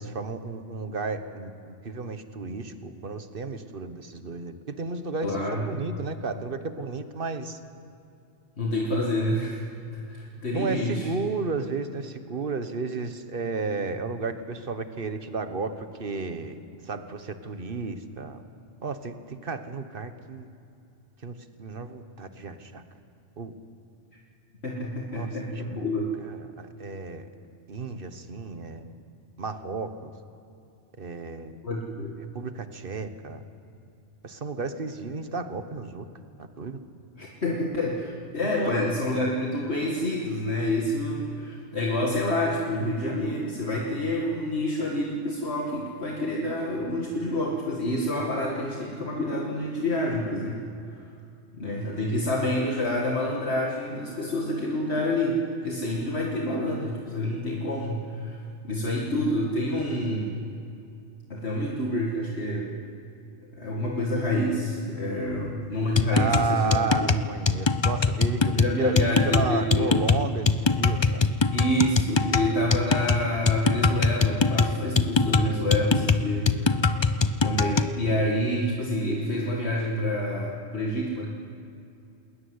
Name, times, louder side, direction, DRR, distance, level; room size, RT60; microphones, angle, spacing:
voice 1, 0.0-7.6 10.5-16.6 16.9-18.4 18.8-19.1 19.4-20.5 21.2-21.3 21.6-22.8 23.4-23.5 25.1-25.3 25.8-25.9 26.3-27.3 27.7-28.9 29.4-30.1 31.0-31.5 32.3-33.4 34.2-36.0 36.4-36.8 38.6-38.8 66.1-71.2, right 4 dB, 50° right, 9 dB, 1.5 m, -33 dB
voice 2, 5.2-5.8 8.6-11.1 24.6-26.1 31.6-32.2 37.2-50.6 51.5-60.4 61.3-62.7 63.5-67.2 68.5-70.0 71.5-77.1 77.4-81.3, left 1 dB, 65° left, -2 dB, 2.2 m, -28 dB
sound 1, 66.0-77.9, left 4 dB, 30° left, 0.6 m, -23 dB
20.5 x 20.0 x 9.7 m, 2.6 s
omnidirectional pair, 1.2 m